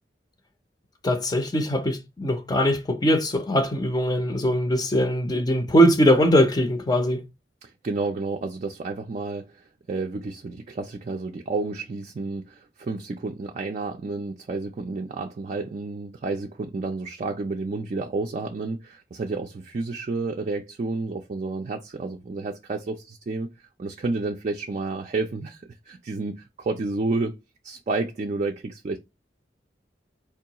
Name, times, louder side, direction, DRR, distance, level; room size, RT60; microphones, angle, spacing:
voice 1, 1.0-7.2, equal, 25° left, 0.5 m, -21 dB
voice 2, 7.6-27.4 27.6-29.0, right 3 dB, 40° right, 0.4 m, -30 dB
4.5 x 2.3 x 2.8 m
head